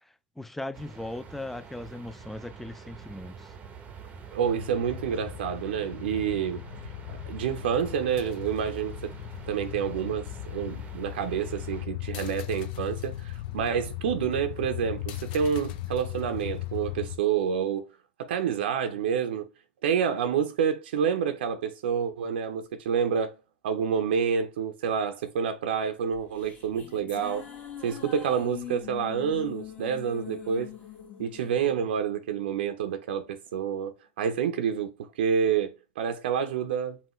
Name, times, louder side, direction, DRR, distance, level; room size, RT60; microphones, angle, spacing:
voice 1, 0.4-3.5, left 1 dB, 5° left, 0.3 m, -38 dB
sound 1, 0.7-11.8, right 6 dB, 25° right, 0.7 m, -46 dB
voice 2, 4.3-6.6 7.1-9.1 9.5-17.9 18.2-19.5 19.8-23.4 23.6-27.5 27.8-30.7 31.2-37.0, right 7 dB, 80° right, 0.6 m, -28 dB
sound 2, 4.4-17.2, left 14 dB, 65° left, 0.5 m, -38 dB
sound 3, 26.1-32.7, left 9 dB, 30° left, 1.6 m, -43 dB
5.5 x 2.4 x 3.0 m
hypercardioid pair, 120°, 6 cm